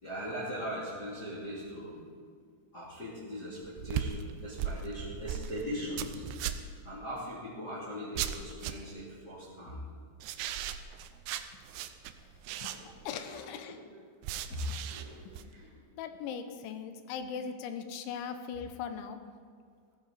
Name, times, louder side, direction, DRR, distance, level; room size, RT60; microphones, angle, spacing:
voice 1, 0.0-2.0 2.7-6.2 6.8-9.8 11.1-11.2 12.5-14.0 14.4-15.7, equal, 25° left, -8 dB, 2.7 m, -40 dB
sound 1, 3.6-6.8 8.2-9.0 10.2-13.1 14.2-15.4, right 10 dB, 80° right, 2.3 m, -37 dB
voice 2, 13.1-13.8 15.3-15.4 16.0-19.2, left 7 dB, 85° left, 8 dB, 3.3 m, -39 dB
17.0 x 14.5 x 4.2 m, 2.1 s
omnidirectional pair, 5.3 m